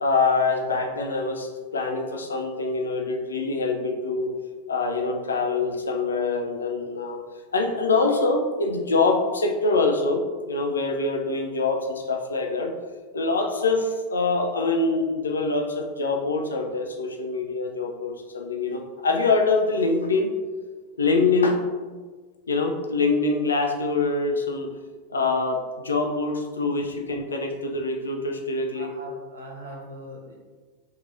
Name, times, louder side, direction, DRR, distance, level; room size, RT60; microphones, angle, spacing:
voice 1, 0.0-4.3 4.7-7.2 7.5-12.7 13.1-20.3 21.0-21.6 22.5-24.7 25.1-28.9, left 3 dB, 70° left, 3 dB, 0.4 m, -24 dB
voice 2, 28.7-30.4, right 1 dB, 70° right, -2 dB, 0.9 m, -40 dB
3.0 x 2.7 x 3.8 m, 1.4 s
figure-of-eight pair, 90°, 0 cm